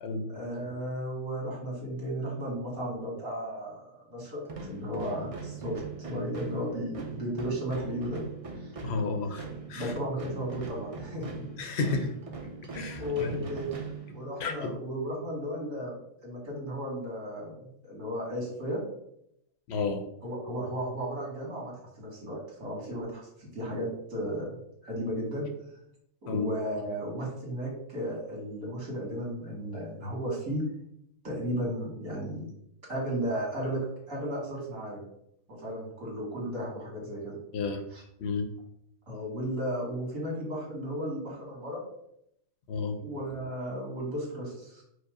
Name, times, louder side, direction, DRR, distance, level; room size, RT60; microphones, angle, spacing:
voice 1, 0.3-8.2 8.5-8.7 9.7-11.4 13.0-13.8 14.1-18.8 20.2-24.6 24.8-25.5 26.2-30.6 31.2-32.5 32.9-33.8 34.1-35.0 35.5-37.4 37.9-38.0 39.1-41.8 43.0-44.8, equal, 70° right, -3 dB, 2.1 m, -34 dB
sound 1, 4.4-14.6, right 4 dB, 55° right, 0.4 m, -41 dB
voice 2, 8.8-9.4 9.7-9.9 11.6-12.1 12.7-13.4 14.4-14.7 19.7-20.0 26.3-26.5 37.5-37.8 38.2-38.5 42.7-43.0, left 4 dB, 60° left, 5 dB, 0.8 m, -31 dB
5.1 x 2.1 x 4.7 m, 0.75 s
omnidirectional pair, 1.4 m